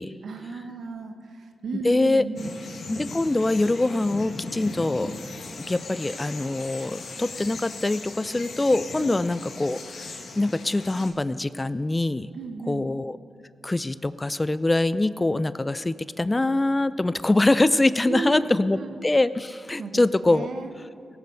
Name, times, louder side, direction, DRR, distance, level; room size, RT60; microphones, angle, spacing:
voice 1, 0.2-2.5 9.0-9.2 12.3-12.9 18.0-19.1 19.8-20.7, right 4 dB, 75° right, 6 dB, 1.1 m, -35 dB
voice 2, 1.8-2.2 2.9-5.1 5.6-12.3 12.7-13.2 13.6-20.5, left 2 dB, 25° left, 16 dB, 0.4 m, -24 dB
sound 1, 2.4-11.1, left 3 dB, 70° left, 1.4 m, -38 dB
17.5 x 8.4 x 5.4 m, 2.3 s
supercardioid pair, 45°, 0 cm